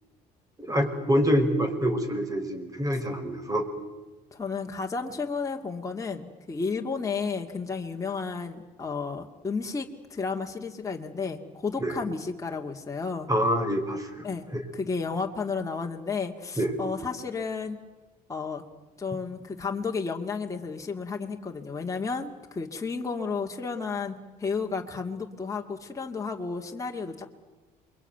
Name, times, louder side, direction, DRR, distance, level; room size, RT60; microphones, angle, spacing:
voice 1, 0.6-3.6 11.8-12.0 13.3-14.2 14.5-14.6 16.6-16.7, equal, 20° right, 6 dB, 5.1 m, -26 dB
voice 2, 4.3-13.3 14.2-14.5 14.7-17.8 18.3-18.6 19.0-27.3, left 4 dB, 20° left, 1 dB, 2.2 m, -32 dB
27.5 x 23.0 x 9.2 m, 1.2 s
cardioid pair, 110°, 17 cm